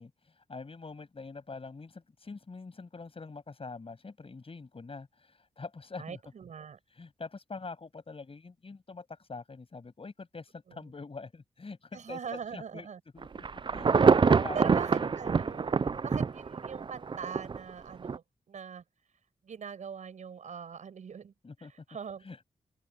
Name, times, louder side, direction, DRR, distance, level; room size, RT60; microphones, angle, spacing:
voice 1, 0.0-6.2 6.9-12.9 13.1-13.4 13.7-16.0 21.4-21.7 22.2-22.4, left 4 dB, 50° left, 7.1 m, -45 dB
voice 2, 6.0-6.8 10.7-10.8 11.9-13.0 14.5-15.8 16.0-18.8 19.4-21.3 21.6-22.4, right 7 dB, 80° right, 7.7 m, -42 dB
Insect / Thunder / Rain, 13.2-17.6 18.0-18.2, right 5 dB, 40° right, 0.5 m, -25 dB
open air
cardioid pair, 45°, 12 cm